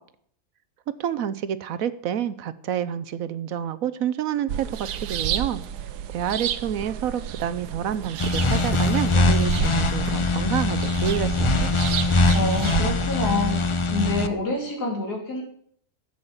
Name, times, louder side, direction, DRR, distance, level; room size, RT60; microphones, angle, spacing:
voice 1, 1.0-5.6 6.1-11.8, right 9 dB, 65° right, 14 dB, 1.0 m, -28 dB
sound 1, 4.5-13.1, right 9 dB, 85° right, 1.3 m, -31 dB
sound 2, 8.2-14.3, left 2 dB, 55° left, 0.3 m, -22 dB
voice 2, 12.3-15.4, left 2 dB, 90° left, -1 dB, 4.0 m, -27 dB
12.0 x 7.9 x 7.2 m, 0.63 s
omnidirectional pair, 1.7 m